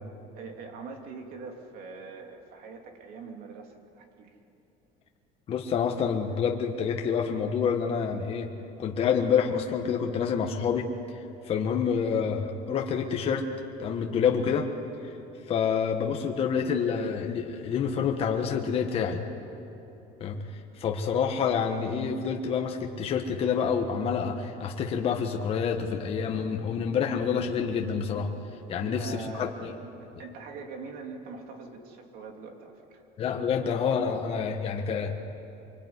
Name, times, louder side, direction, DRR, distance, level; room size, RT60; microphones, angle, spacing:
voice 1, 0.3-4.4 28.7-29.6 30.0-33.0, right 4 dB, 60° right, 3 dB, 3.0 m, -43 dB
voice 2, 5.5-8.5 8.8-10.9 11.4-13.5 13.8-14.7 15.0-15.2 15.5-19.2 20.2-28.3 28.7-29.7 33.2-35.2, left 6 dB, 35° left, 2 dB, 1.5 m, -28 dB
25.5 x 23.0 x 9.7 m, 3.0 s
cardioid pair, 165°, 17 cm